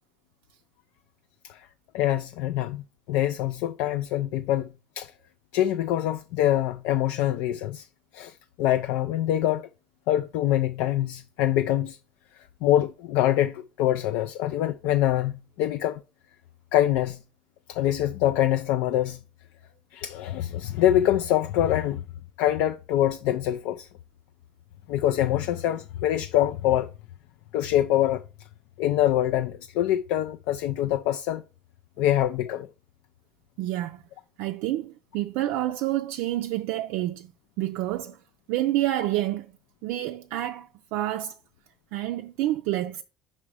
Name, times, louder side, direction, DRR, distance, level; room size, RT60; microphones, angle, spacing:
voice 1, 1.9-5.1 5.5-7.9 8.1-9.7 10.1-12.0 12.6-16.0 16.7-17.2 17.7-19.2 19.9-22.0 22.4-23.9 24.9-26.9 27.5-28.2 28.8-31.4 32.0-32.7, left 12 dB, 75° left, 0.3 m, -25 dB
voice 2, 33.6-34.0 34.4-37.3 37.6-38.2 38.5-39.5 39.8-41.3 41.9-43.0, right 14 dB, 75° right, 0.4 m, -28 dB
4.9 x 4.3 x 4.7 m
supercardioid pair, 90°, 3 cm